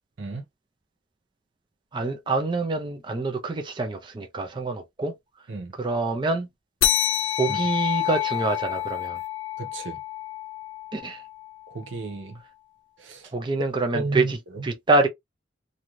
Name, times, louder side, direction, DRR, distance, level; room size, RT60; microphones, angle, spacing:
voice 1, 1.9-5.1 5.7-6.5 7.4-9.2 10.9-11.2 13.3-15.1, right 3 dB, 25° right, 0.4 m, -26 dB
sound 1, 6.8-11.7, left 12 dB, 70° left, 0.5 m, -28 dB
voice 2, 9.6-10.0 11.7-12.4 13.0-13.2 13.9-14.3, right 3 dB, 70° right, 0.7 m, -32 dB
2.6 x 2.4 x 3.0 m
head